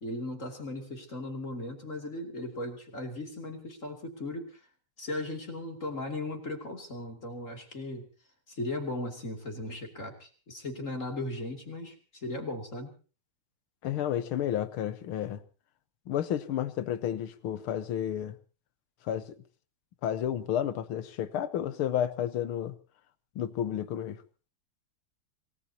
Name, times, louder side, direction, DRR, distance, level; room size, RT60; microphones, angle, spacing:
voice 1, 0.0-4.6 5.0-8.1 8.5-12.9, left 1 dB, 35° left, 3.2 m, -37 dB
voice 2, 13.8-15.4 16.1-18.3 19.1-19.4 20.0-22.8 23.4-24.2, left 10 dB, 85° left, 2.0 m, -31 dB
26.5 x 18.0 x 2.9 m
omnidirectional pair, 2.3 m